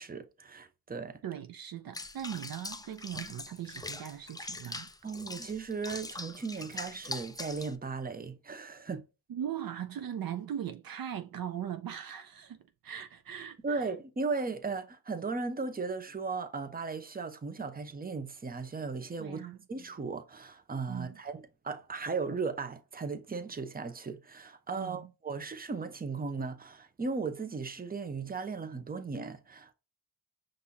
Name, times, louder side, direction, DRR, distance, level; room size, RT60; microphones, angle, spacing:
voice 1, 0.0-1.2 5.0-9.0 13.6-19.4 19.7-29.7, right 4 dB, 20° right, 0.7 m, -36 dB
voice 2, 1.2-4.9 9.3-12.6 12.8-13.9 19.2-19.6 20.9-21.2 24.8-25.1, right 10 dB, 60° right, 0.6 m, -39 dB
Water / Bathtub (filling or washing), 1.9-7.8, left 2 dB, 10° left, 0.4 m, -42 dB
5.4 x 2.6 x 2.9 m
cardioid pair, 50°, 40 cm